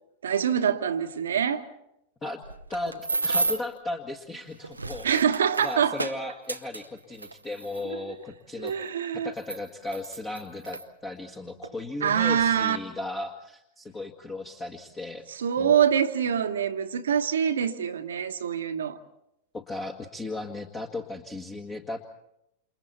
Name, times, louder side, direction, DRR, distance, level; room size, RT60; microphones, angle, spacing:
voice 1, 0.2-1.6 5.0-6.0 8.6-9.3 12.0-12.8 15.4-19.0, right 8 dB, 65° right, 1.2 m, -25 dB
sound 1, 2.4-3.8 4.5-7.8 8.7-8.8 9.4-10.8 11.6-11.8 12.1-12.4, right 3 dB, 80° right, 0.8 m, -32 dB
voice 2, 2.7-5.1 5.6-8.7 9.1-15.2 15.6-15.8 19.5-22.0, left 2 dB, 20° left, 1.8 m, -36 dB
29.0 x 28.5 x 4.3 m
figure-of-eight pair, 90°, 0 cm